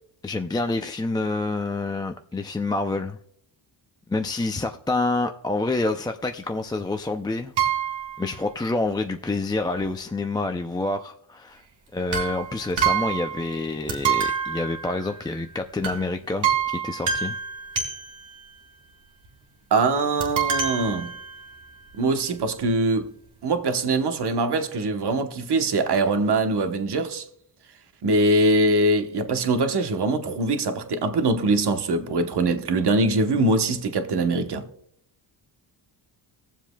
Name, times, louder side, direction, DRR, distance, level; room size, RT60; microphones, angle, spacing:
voice 1, 0.2-3.2 4.1-7.5 8.2-11.6 11.9-17.4, left 2 dB, 10° left, 0.4 m, -27 dB
sound 1, 7.6-8.3 12.1-13.6 13.9-15.4 15.8-16.1 16.4-18.4 20.2-21.7 22.4-22.5 22.7-22.8, right 7 dB, 70° right, 2.7 m, -27 dB
voice 2, 19.7-21.1 22.0-23.1 23.4-27.2 28.0-34.6, right 2 dB, 55° right, 1.1 m, -22 dB
20.5 x 7.3 x 2.3 m
cardioid pair, 95°, 47 cm